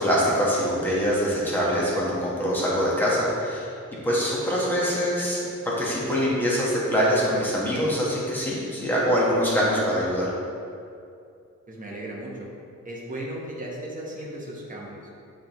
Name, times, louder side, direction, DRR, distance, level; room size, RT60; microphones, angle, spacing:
voice 1, 0.0-3.7 4.0-10.3, equal, 5° left, -7 dB, 1.3 m, -24 dB
voice 2, 11.7-12.5 12.8-15.0, right 1 dB, 25° right, -4 dB, 1.1 m, -36 dB
9.4 x 3.6 x 3.0 m, 2.5 s
wide cardioid pair, 130°, 30 cm